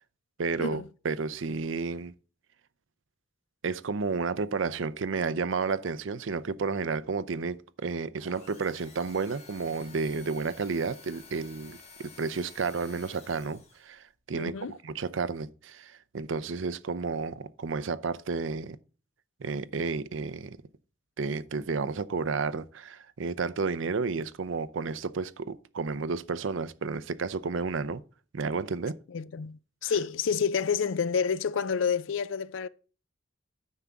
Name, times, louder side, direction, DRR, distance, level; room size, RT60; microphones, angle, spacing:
voice 1, 0.4-2.1 3.6-18.8 19.4-20.6 21.2-28.0 28.3-29.0 29.8-29.9, right 4 dB, 80° right, 0.6 m, -32 dB
sound 1, 8.2-14.0, left 4 dB, 35° left, 2.0 m, -52 dB
voice 2, 14.3-14.8 29.1-32.7, left 6 dB, 85° left, 0.5 m, -29 dB
9.6 x 3.6 x 7.0 m
head